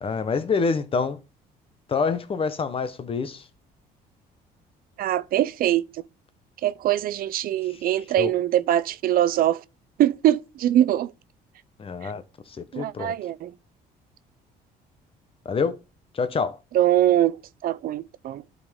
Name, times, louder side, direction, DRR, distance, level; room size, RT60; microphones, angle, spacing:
voice 1, 0.0-1.2 1.9-3.5 7.7-7.8 8.2-8.3 11.8-13.1 15.4-15.7 16.1-16.6, left 5 dB, 35° left, 0.9 m, -27 dB
voice 2, 5.0-5.8 6.6-9.6 10.0-11.1 12.0-12.1 12.7-13.5 16.7-17.4 17.6-18.4, right 12 dB, 60° right, 0.5 m, -22 dB
12.0 x 4.0 x 3.6 m
cardioid pair, 110°, 17 cm